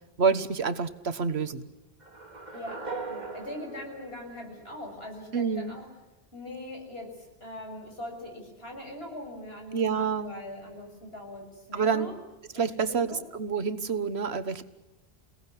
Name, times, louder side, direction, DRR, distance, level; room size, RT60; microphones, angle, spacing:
voice 1, 0.2-1.7 5.3-5.7 9.7-10.3 11.7-12.1 12.5-14.6, right 5 dB, 90° right, 11 dB, 1.6 m, -28 dB
sound 1, 2.0-5.1, right 3 dB, 45° right, 2.8 m, -40 dB
voice 2, 2.5-5.9 6.3-12.2 12.5-13.2, left 1 dB, 75° left, 2 dB, 7.2 m, -41 dB
29.0 x 18.0 x 9.9 m, 1.0 s
omnidirectional pair, 1.0 m